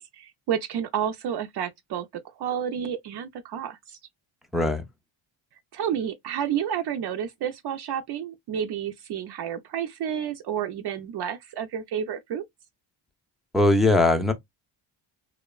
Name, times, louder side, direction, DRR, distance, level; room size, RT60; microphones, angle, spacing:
voice 1, 0.0-2.1 2.4-4.0 5.7-12.4, right 9 dB, 55° right, 0.5 m, -30 dB
voice 2, 4.5-4.8 13.5-14.3, left 2 dB, ahead, 0.3 m, -20 dB
2.8 x 2.1 x 2.2 m
cardioid pair, 100°, 47 cm